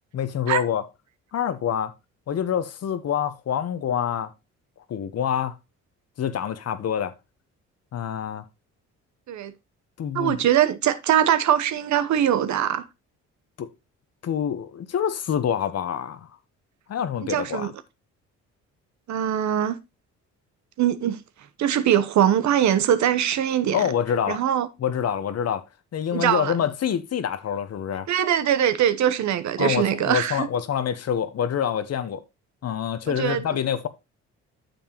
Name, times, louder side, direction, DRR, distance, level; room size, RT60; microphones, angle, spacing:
voice 1, 0.1-0.8 1.3-1.9 2.3-4.3 4.9-5.5 6.2-7.1 7.9-8.5 10.0-10.4 13.6-13.7 14.2-16.3 16.9-17.7 23.7-24.4 24.8-25.6 25.9-28.1 29.6-32.2 32.6-33.9, left 8 dB, 55° left, 1.0 m, -26 dB
voice 2, 10.1-12.8 17.2-17.7 19.1-19.8 20.8-21.2 21.6-23.9 24.3-24.7 26.1-26.5 28.1-30.5 33.1-33.4, right 10 dB, 70° right, 0.9 m, -22 dB
9.2 x 7.1 x 2.9 m
cardioid pair, 90°, 30 cm